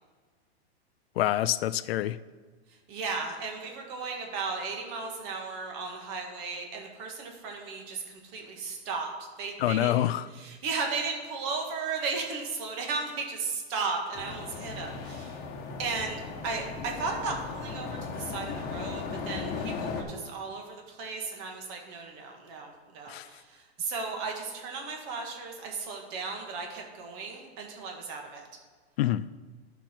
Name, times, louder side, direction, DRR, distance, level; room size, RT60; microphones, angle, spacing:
voice 1, 1.2-2.2 9.6-10.3 23.1-23.3 29.0-29.3, left 13 dB, 65° left, 0.5 m, -26 dB
voice 2, 2.9-15.4 15.8-28.5, right 4 dB, 40° right, 1.9 m, -35 dB
sound 1, 14.1-20.0, left 5 dB, 30° left, 1.3 m, -37 dB
11.5 x 5.9 x 4.5 m
supercardioid pair, 150°, 32 cm